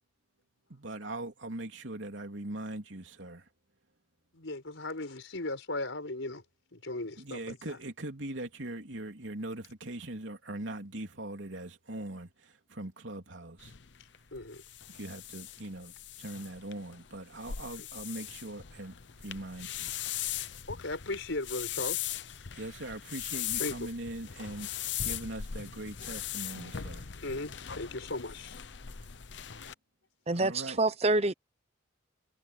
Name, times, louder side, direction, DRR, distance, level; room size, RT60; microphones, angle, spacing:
voice 1, 0.7-3.5 7.2-13.7 14.9-19.9 22.5-27.1 30.3-30.8, right 1 dB, 75° right, 3.3 m, -41 dB
voice 2, 4.3-6.4 6.7-7.8 14.3-14.6 20.7-22.2 23.6-23.8 27.2-28.6, left 2 dB, 85° left, 4.6 m, -37 dB
sound 1, 13.6-29.7, left 10 dB, 65° left, 0.8 m, -39 dB
voice 3, 30.3-31.3, right 2 dB, 35° right, 0.9 m, -27 dB
head